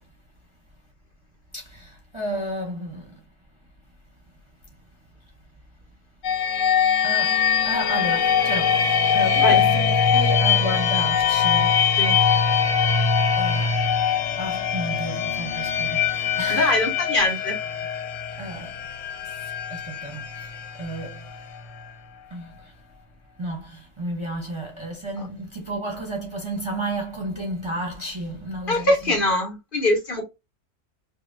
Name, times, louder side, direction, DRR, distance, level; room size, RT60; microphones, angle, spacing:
voice 1, 1.5-3.1 7.0-11.9 12.3-12.4 13.4-13.8 14.4-16.8 18.4-18.8 19.2-19.3 19.7-20.5 20.8-21.2 22.3-22.7 23.4-29.1, right 1 dB, 25° right, 0.9 m, -32 dB
sound 1, 6.2-21.9, left 7 dB, 90° left, 1.0 m, -22 dB
voice 2, 16.5-17.6 25.2-25.3 28.7-30.2, left 1 dB, 45° left, 1.1 m, -22 dB
5.2 x 2.2 x 2.5 m
omnidirectional pair, 1.3 m